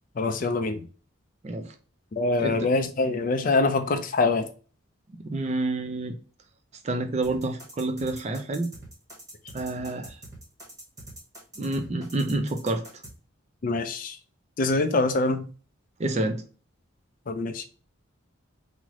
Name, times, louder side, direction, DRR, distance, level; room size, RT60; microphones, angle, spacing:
voice 1, 0.2-0.8 2.1-4.5 13.6-14.2 14.6-15.5 17.3-17.7, left 3 dB, 40° left, 0.3 m, -24 dB
voice 2, 1.4-1.7 2.4-2.7 5.2-6.2 6.8-8.7 9.5-10.2 11.6-13.0 16.0-16.4, right 2 dB, 30° right, 0.4 m, -28 dB
sound 1, 7.2-13.1, right 1 dB, 15° right, 0.9 m, -44 dB
3.0 x 2.0 x 3.6 m
head